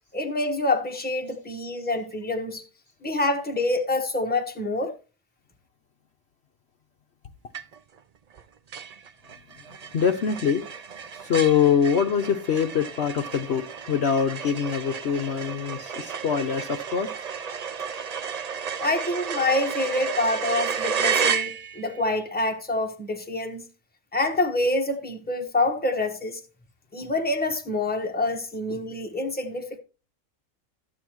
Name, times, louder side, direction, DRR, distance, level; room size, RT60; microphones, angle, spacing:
voice 1, 0.1-2.6 3.0-4.9 18.8-23.6 24.1-26.4 26.9-29.8, left 2 dB, 5° left, 1.1 m, -26 dB
sound 1, 7.5-8.0 8.3-8.4 8.7-22.0, right 6 dB, 60° right, 0.4 m, -32 dB
voice 2, 9.9-10.6 11.1-17.1, left 7 dB, 55° left, 0.9 m, -24 dB
12.5 x 9.2 x 3.0 m
omnidirectional pair, 1.5 m